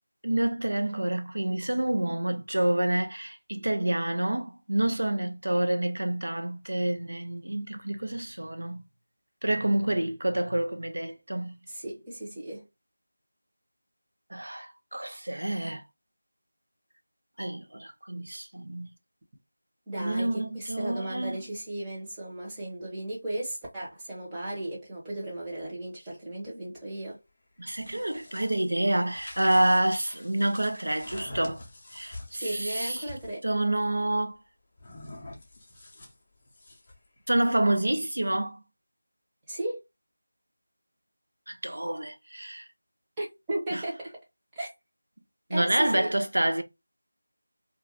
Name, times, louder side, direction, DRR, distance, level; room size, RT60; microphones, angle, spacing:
voice 1, 0.2-8.8 9.4-11.6 14.3-15.8 17.4-18.9 20.0-21.4 27.6-31.6 31.9-33.1 33.4-34.3 37.3-38.6 41.5-42.6 43.7-43.8 45.5-46.6, right 1 dB, 75° right, 0.5 m, -28 dB
voice 2, 11.7-12.7 19.9-27.2 32.3-33.4 39.5-39.8 43.2-44.2 44.6-44.7 45.5-46.1, right 1 dB, 10° right, 0.8 m, -35 dB
sound 1, 27.6-33.4 34.8-37.1, left 1 dB, 20° left, 0.6 m, -46 dB
2.4 x 2.3 x 3.3 m
figure-of-eight pair, 170°, 0 cm